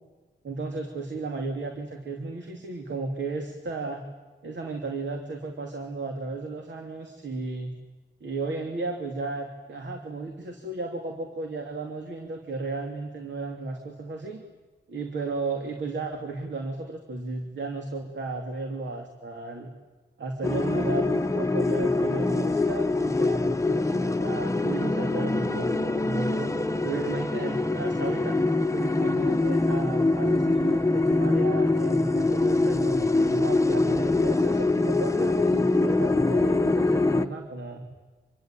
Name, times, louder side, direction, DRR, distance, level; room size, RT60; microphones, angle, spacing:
voice 1, 0.4-4.0 4.4-7.7 8.2-14.4 14.9-19.7 20.2-26.5 26.8-28.4 28.7-37.8, right 3 dB, 75° right, 3 dB, 3.0 m, -34 dB
sound 1, 20.4-37.3, left 2 dB, 15° left, 0.9 m, -24 dB
27.0 x 23.5 x 9.0 m, 1.3 s
wide cardioid pair, 135°, 19 cm